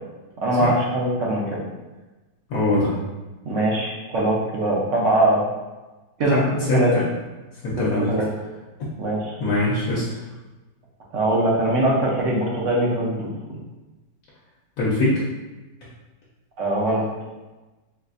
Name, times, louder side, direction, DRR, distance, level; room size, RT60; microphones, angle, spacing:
voice 1, 0.4-1.6 3.4-5.4 6.2-6.9 8.1-8.3 9.0-9.3 11.1-13.6 16.6-17.1, right 1 dB, 65° right, -4 dB, 0.8 m, -22 dB
voice 2, 2.5-2.9 6.3-6.4 6.7-7.0 7.6-8.1 9.4-10.1 14.8-15.2, left 2 dB, 65° left, -7 dB, 1.1 m, -22 dB
4.1 x 2.4 x 2.5 m, 1.1 s
omnidirectional pair, 1.8 m